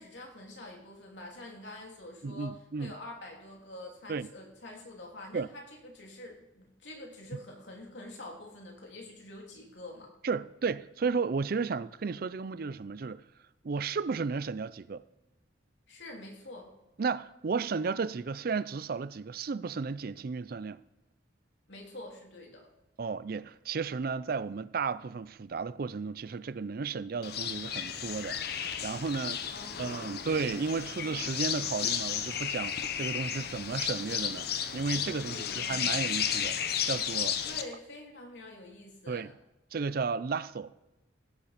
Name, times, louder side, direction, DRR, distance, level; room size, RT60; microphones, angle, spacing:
voice 1, 0.0-10.1 15.9-16.7 21.7-22.7 29.5-30.4 35.3-36.0 37.4-39.3, left 1 dB, 75° left, 3.2 m, -46 dB
voice 2, 2.2-2.9 4.1-4.3 5.3-5.5 10.2-13.2 13.6-15.0 17.0-20.8 23.0-29.4 29.8-36.6 36.8-37.4 39.1-39.3 39.7-40.7, right 4 dB, 55° right, 0.4 m, -33 dB
sound 1, 27.2-37.6, left 8 dB, 55° left, 0.8 m, -33 dB
16.5 x 6.8 x 5.8 m
head